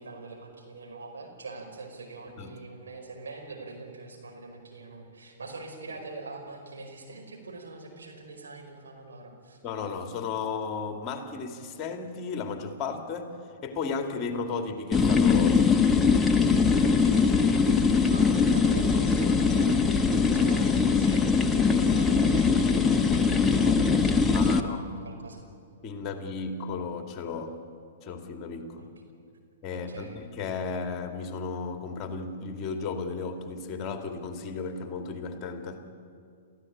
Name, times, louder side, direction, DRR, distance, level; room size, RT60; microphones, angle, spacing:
voice 1, 0.0-9.6 17.0-17.4 18.1-25.4 28.8-28.9 29.7-30.2, right 3 dB, 70° right, 2 dB, 5.1 m, -43 dB
voice 2, 9.6-13.3 13.6-15.7 24.3-25.1 25.8-27.6 28.0-28.9 29.6-35.9, left 4 dB, 30° left, 5 dB, 2.4 m, -34 dB
sound 1, 14.9-24.6, left 5 dB, 10° left, 1.1 m, -22 dB
30.0 x 14.5 x 8.8 m, 2.4 s
figure-of-eight pair, 110°, 0 cm